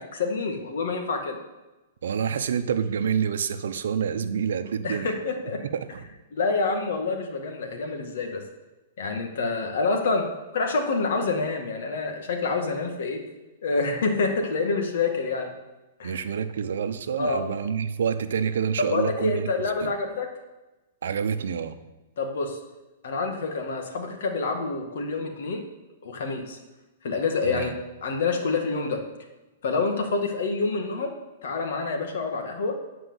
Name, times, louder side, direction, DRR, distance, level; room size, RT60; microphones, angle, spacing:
voice 1, 0.0-1.4 4.8-5.6 6.3-8.4 9.0-13.2 13.6-15.5 16.0-16.2 17.2-17.4 18.9-20.3 22.2-22.6 23.0-25.6 26.0-26.6 27.0-27.7 28.0-29.0 29.6-31.1 31.4-32.9, left 4 dB, 70° left, 4 dB, 2.0 m, -27 dB
voice 2, 2.0-5.1 5.7-6.0 16.0-19.5 19.8-19.9 21.0-21.8 27.4-27.7, right 7 dB, 80° right, 10 dB, 0.8 m, -27 dB
10.0 x 5.0 x 7.9 m, 1.1 s
hypercardioid pair, 145°, 0 cm